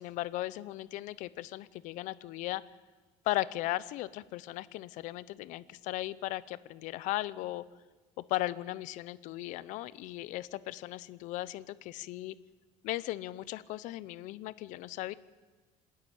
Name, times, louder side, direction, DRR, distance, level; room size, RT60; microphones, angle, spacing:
voice 1, 0.0-2.6 3.2-7.6 8.3-12.4 12.8-15.1, left 16 dB, 75° left, 18 dB, 0.7 m, -37 dB
27.0 x 10.5 x 9.4 m, 1.3 s
cardioid pair, 160°, 13 cm